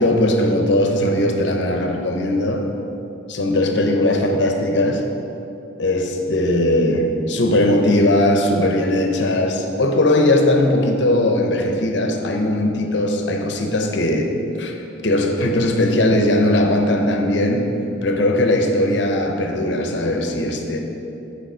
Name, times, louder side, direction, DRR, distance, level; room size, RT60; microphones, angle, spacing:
voice 1, 0.0-2.7 3.3-5.1 5.8-14.8 15.0-17.7 18.0-20.8, left 1 dB, 65° left, 4 dB, 0.8 m, -19 dB
9.1 x 4.9 x 5.6 m, 3.0 s
head